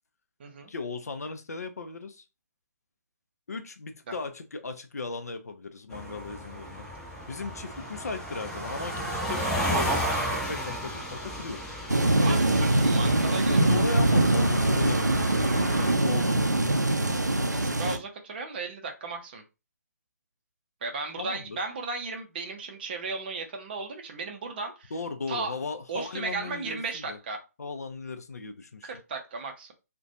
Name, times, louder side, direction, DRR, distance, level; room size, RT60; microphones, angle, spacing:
voice 1, 0.7-2.2 3.5-6.9 7.3-11.6 12.3-12.9 13.5-17.3 21.2-21.6 24.9-27.2 27.6-28.9, left 4 dB, 65° left, 8 dB, 0.4 m, -37 dB
sound 1, 5.9-15.9, equal, 5° left, 0.6 m, -33 dB
sound 2, 11.9-18.0, right 2 dB, 90° right, 0.4 m, -23 dB
voice 2, 12.2-13.8 17.5-19.4 20.8-24.9 25.3-25.6 25.9-27.4 28.8-29.7, right 4 dB, 35° right, 4 dB, 0.5 m, -35 dB
2.4 x 2.2 x 2.7 m, 0.28 s
figure-of-eight pair, 140°, 9 cm